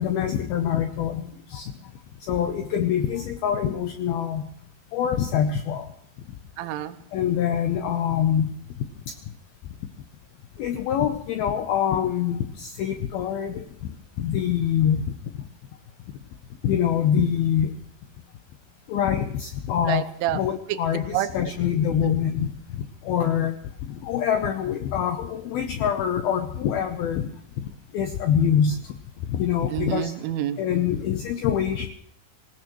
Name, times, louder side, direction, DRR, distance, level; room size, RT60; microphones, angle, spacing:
voice 1, 0.0-1.7 2.3-4.5 4.9-5.9 7.1-8.5 9.1-9.2 10.6-13.7 14.2-15.0 16.6-17.7 18.9-20.0 20.3-23.6 23.9-27.3 27.9-28.8 29.3-30.1 30.6-31.9, left 9 dB, 90° left, 7 dB, 2.2 m, -25 dB
voice 2, 6.6-7.0 19.9-20.4 20.7-20.8 21.1-21.3 22.0-22.1 29.7-30.6, right 12 dB, 85° right, 10 dB, 3.4 m, -27 dB
26.0 x 17.5 x 3.1 m, 0.70 s
omnidirectional pair, 5.5 m